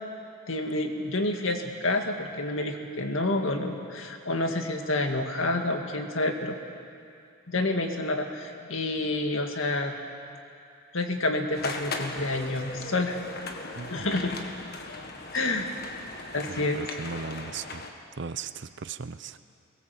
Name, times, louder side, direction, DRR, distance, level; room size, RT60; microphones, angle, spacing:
voice 1, 0.5-6.6 7.5-9.9 10.9-13.2 13.9-14.3 15.3-15.7 16.3-16.8, left 2 dB, 70° left, 4 dB, 2.0 m, -28 dB
sound 1, 11.5-17.9, left 3 dB, 45° left, 1.7 m, -38 dB
voice 2, 13.8-14.4 16.5-17.8 18.2-19.4, right 5 dB, 55° right, 12 dB, 0.6 m, -38 dB
23.0 x 19.5 x 7.7 m, 2.5 s
head